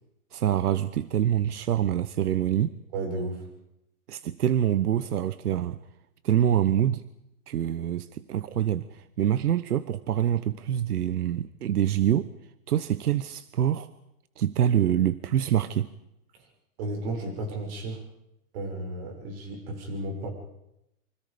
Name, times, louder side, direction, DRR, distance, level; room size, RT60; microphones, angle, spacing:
voice 1, 0.3-2.7 4.1-5.8 6.2-7.0 7.5-12.3 12.7-13.9 14.4-15.9, right 10 dB, 80° right, 14 dB, 1.2 m, -25 dB
voice 2, 2.9-3.4 16.8-18.0 18.5-20.3, right 2 dB, 40° right, 3 dB, 7.0 m, -33 dB
27.5 x 25.5 x 5.2 m, 0.84 s
hypercardioid pair, 155°, 45 cm